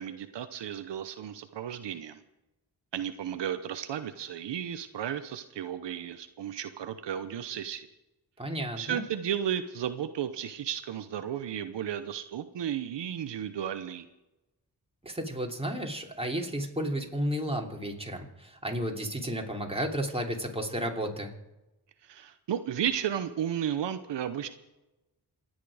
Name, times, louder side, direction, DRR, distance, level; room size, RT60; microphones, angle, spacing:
voice 1, 0.0-2.2 2.9-7.9 8.8-14.0 22.1-24.5, right 9 dB, 85° right, 10 dB, 0.9 m, -34 dB
voice 2, 8.4-9.0 15.0-21.3, equal, 15° right, 1 dB, 3.1 m, -33 dB
28.0 x 9.4 x 4.9 m, 1.0 s
cardioid pair, 55°, 41 cm